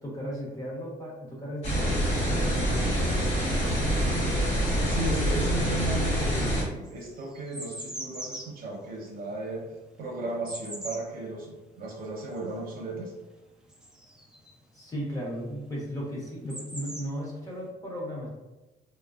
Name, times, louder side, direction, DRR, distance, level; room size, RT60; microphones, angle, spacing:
voice 1, 0.0-3.7 14.7-18.3, equal, 20° left, -5 dB, 1.0 m, -36 dB
sound 1, 1.6-6.6, equal, 40° left, 1.2 m, -26 dB
sound 2, 3.9-5.1 5.4-14.7 15.7-15.8 16.0-17.6, right 1 dB, 5° right, 0.4 m, -43 dB
voice 2, 4.8-9.6 10.0-13.1, right 2 dB, 60° right, -2 dB, 0.8 m, -35 dB
3.2 x 2.1 x 2.4 m, 1.1 s
cardioid pair, 110°, 17 cm